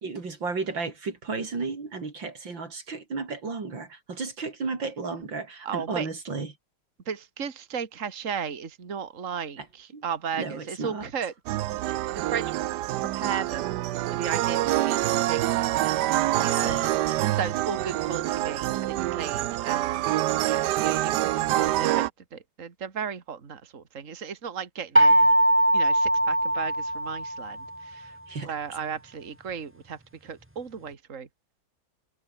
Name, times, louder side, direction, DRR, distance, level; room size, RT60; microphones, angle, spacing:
voice 1, 0.0-6.5 9.6-9.7 9.9-10.0 10.4-11.1 16.4-17.3 25.1-25.2 28.3-28.5, right 4 dB, 90° right, 4.5 m, -33 dB
voice 2, 5.6-6.1 7.1-11.6 11.8-12.6 13.1-13.7 14.1-15.5 16.4-16.7 17.3-25.1 25.7-28.2 28.4-31.3, right 7 dB, 45° right, 2.3 m, -35 dB
sound 1, 11.5-22.1, right 15 dB, 70° right, 1.1 m, -26 dB
sound 2, 25.0-27.7, right 1 dB, 5° right, 2.5 m, -21 dB
omnidirectional pair, 2.0 m